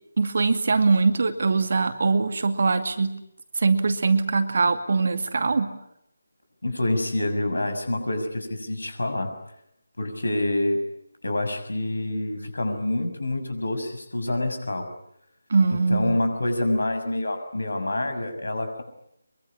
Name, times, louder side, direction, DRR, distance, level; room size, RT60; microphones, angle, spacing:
voice 1, 0.2-3.1 3.6-5.7 15.5-16.2, right 4 dB, 45° right, 8 dB, 2.4 m, -22 dB
voice 2, 6.6-9.3 10.0-10.8 11.2-14.9 15.7-18.8, left 1 dB, 65° left, 8 dB, 6.4 m, -27 dB
24.0 x 23.5 x 10.0 m, 0.78 s
figure-of-eight pair, 155°, 0 cm